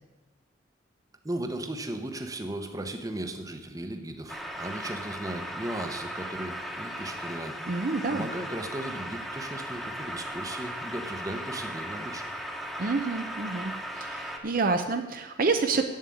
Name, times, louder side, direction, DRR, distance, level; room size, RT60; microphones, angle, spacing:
voice 1, 1.2-7.6 8.1-12.3, right 1 dB, 20° right, 6 dB, 1.0 m, -36 dB
sound 1, 4.3-14.4, equal, ahead, 1.2 m, -37 dB
voice 2, 7.7-8.3 12.8-15.8, right 4 dB, 50° right, 6 dB, 0.7 m, -28 dB
8.2 x 7.4 x 8.6 m, 1.2 s
head